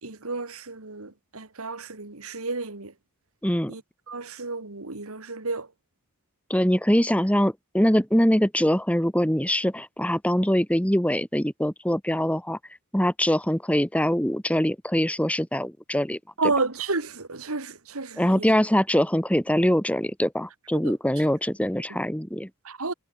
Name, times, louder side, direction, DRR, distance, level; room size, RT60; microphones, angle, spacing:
voice 1, 0.0-2.9 3.7-3.8 4.1-5.7 16.4-18.5 20.8-20.9 22.6-22.9, right 3 dB, 80° right, 2.4 m, -31 dB
voice 2, 6.5-12.6 12.9-16.2 18.2-22.5, equal, 5° left, 2.2 m, -23 dB
head